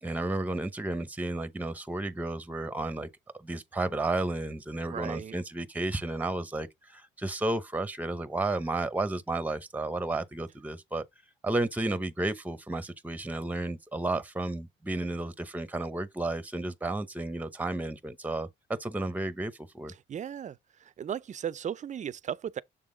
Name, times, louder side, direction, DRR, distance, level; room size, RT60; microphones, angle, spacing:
voice 1, 0.0-3.1 3.3-11.0 11.4-18.5 18.8-19.9, right 2 dB, 10° right, 0.7 m, -32 dB
voice 2, 4.9-5.3 20.1-20.6 21.0-22.6, right 9 dB, 40° right, 0.4 m, -35 dB
7.0 x 3.6 x 3.8 m
cardioid pair, 90°, 20 cm